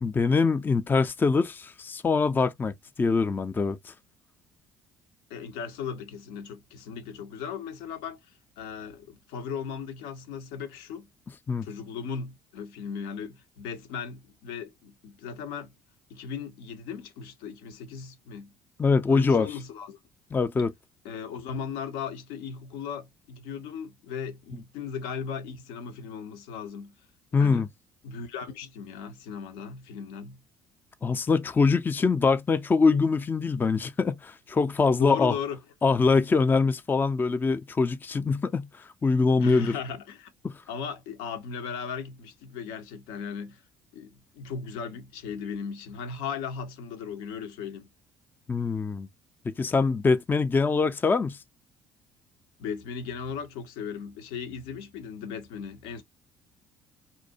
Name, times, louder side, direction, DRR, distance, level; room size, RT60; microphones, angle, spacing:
voice 1, 0.0-3.9 11.5-11.7 18.8-19.5 20.3-20.7 27.3-27.7 31.0-35.4 35.8-39.7 40.4-40.6 48.5-49.1 49.4-51.4, left 4 dB, 20° left, 0.4 m, -24 dB
voice 2, 5.3-11.1 11.6-15.7 16.1-18.5 19.1-20.0 21.0-27.0 27.3-27.7 28.0-30.4 35.0-35.6 39.4-40.3 40.7-43.6 43.9-47.9 52.6-56.0, left 6 dB, 65° left, 0.6 m, -37 dB
2.6 x 2.1 x 2.6 m
figure-of-eight pair, 50°, 10 cm